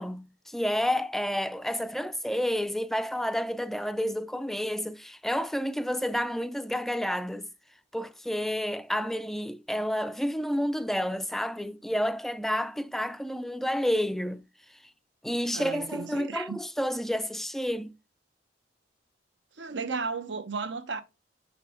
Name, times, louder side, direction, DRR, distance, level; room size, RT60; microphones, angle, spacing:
voice 1, 0.0-7.5 7.9-14.4 15.2-17.9, equal, ahead, 0.3 m, -30 dB
voice 2, 15.5-16.6 19.6-21.0, right 4 dB, 75° right, 0.8 m, -34 dB
5.9 x 4.2 x 4.3 m
head